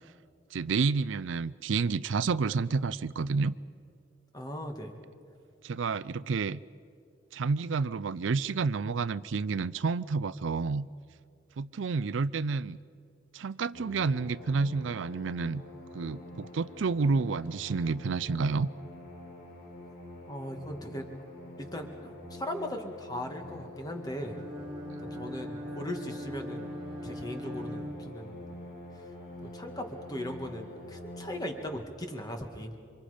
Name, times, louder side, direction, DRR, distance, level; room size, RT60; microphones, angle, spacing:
voice 1, 0.5-3.6 5.6-6.6 7.3-10.9 11.6-12.8 13.3-15.6 15.9-18.7, right 4 dB, 80° right, 17 dB, 0.5 m, -29 dB
voice 2, 4.3-4.9 20.3-21.1 21.6-24.4 25.0-26.8 27.0-28.4 29.4-32.7, left 1 dB, 20° left, 4 dB, 1.9 m, -38 dB
sound 1, 13.7-31.7, left 1 dB, 55° left, 5.9 m, -46 dB
Bowed string instrument, 24.1-28.7, equal, 25° right, 2.1 m, -41 dB
27.5 x 25.5 x 5.1 m, 2.3 s
head